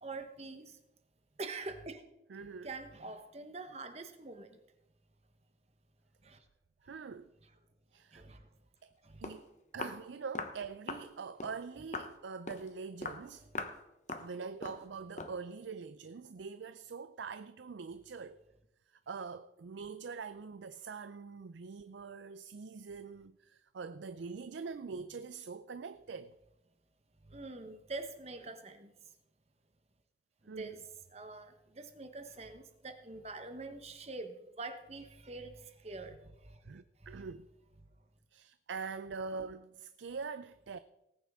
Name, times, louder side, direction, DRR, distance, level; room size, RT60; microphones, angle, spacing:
voice 1, 0.0-0.8 1.4-2.0 2.6-4.6 6.2-6.4 8.1-8.4 9.0-9.2 27.3-28.9 30.4-30.8 31.1-36.6 37.0-37.3, right 3 dB, 35° right, 1.1 m, -45 dB
voice 2, 2.3-2.7 6.8-7.3 7.9-8.2 8.8-8.9 9.2-9.5 9.7-13.5 14.2-18.4 18.9-26.4 30.5-30.8 36.7-37.5 38.3-40.8, right 5 dB, 85° right, 0.5 m, -44 dB
Walk footsteps, 8.9-9.0 9.2-9.4 9.8-10.0 10.3-10.6 10.9-11.1 11.4-11.6 11.9-12.1 12.5-12.7 13.0-13.2 13.5-13.8 14.1-14.3 14.6-14.8 15.2-15.4, left 3 dB, 40° left, 1.0 m, -40 dB
18.5 x 9.4 x 3.6 m
head